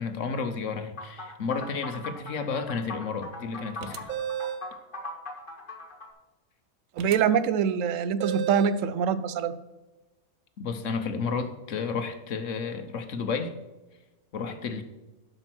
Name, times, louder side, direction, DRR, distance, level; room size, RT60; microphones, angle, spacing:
voice 1, 0.0-4.1 10.6-13.5 14.3-14.8, left 5 dB, 60° left, 8 dB, 1.2 m, -32 dB
sound 1, 1.0-6.1, left 2 dB, 35° left, 1.7 m, -39 dB
sound 2, 3.8-4.7 7.0-7.2 8.2-8.8, right 9 dB, 90° right, 1.2 m, -33 dB
voice 2, 7.0-9.5, right 7 dB, 70° right, 14 dB, 1.0 m, -24 dB
12.0 x 5.4 x 6.0 m, 1.1 s
omnidirectional pair, 1.5 m